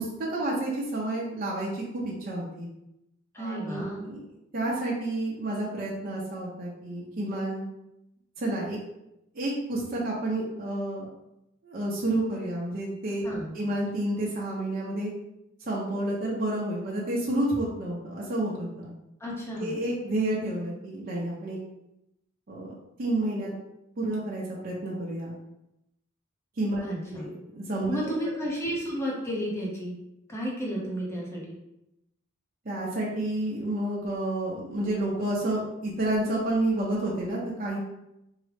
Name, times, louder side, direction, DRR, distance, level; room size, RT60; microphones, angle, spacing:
voice 1, 0.0-1.8 2.2-2.7 3.4-4.2 4.5-7.6 8.4-8.8 9.3-11.1 11.6-13.3 13.5-15.1 15.6-18.9 19.6-21.6 22.5-23.5 24.0-25.3 26.6-28.1 32.6-37.8, right 1 dB, 45° right, -5 dB, 0.6 m, -30 dB
voice 2, 3.3-4.0 13.2-13.5 19.2-19.7 26.8-27.3 27.9-29.9 30.3-31.6, equal, 10° left, -4 dB, 0.7 m, -32 dB
3.6 x 2.0 x 3.3 m, 0.87 s
head